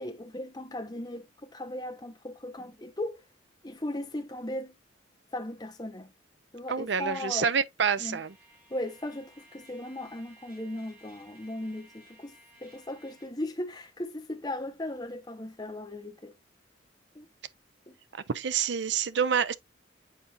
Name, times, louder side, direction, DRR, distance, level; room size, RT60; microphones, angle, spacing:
voice 1, 0.0-3.2 3.6-4.8 5.3-6.1 6.5-7.5 8.0-8.2 8.7-12.3 12.6-16.3 17.1-17.3 17.9-18.0, left 1 dB, 20° left, 0.9 m, -37 dB
voice 2, 6.7-8.3 18.3-19.6, right 7 dB, 65° right, 0.5 m, -27 dB
Trumpet, 8.0-13.3, right 1 dB, 10° right, 2.3 m, -57 dB
9.0 x 4.2 x 2.5 m
head